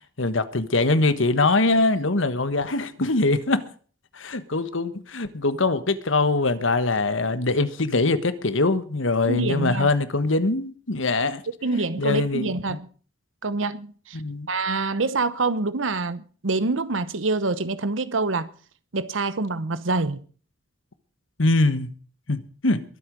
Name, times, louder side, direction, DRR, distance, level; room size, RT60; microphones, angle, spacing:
voice 1, 0.2-3.6 4.1-11.4 12.0-12.8 14.1-14.5 21.4-21.9 22.3-22.8, left 2 dB, 80° left, 1.4 m, -23 dB
voice 2, 9.2-9.9 11.6-12.9 13.4-14.2 14.5-18.5 18.9-20.2, right 3 dB, 90° right, 1.0 m, -26 dB
22.0 x 8.2 x 5.3 m
head